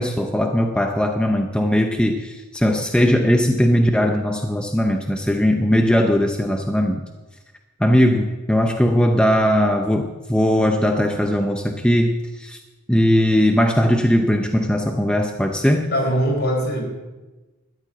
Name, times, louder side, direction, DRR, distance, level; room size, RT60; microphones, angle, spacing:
voice 1, 0.0-7.0 7.8-12.6 12.9-15.9, equal, 5° left, 3 dB, 0.7 m, -19 dB
voice 2, 15.9-16.9, equal, 50° left, 1 dB, 4.4 m, -21 dB
13.0 x 7.5 x 9.8 m, 1.2 s
head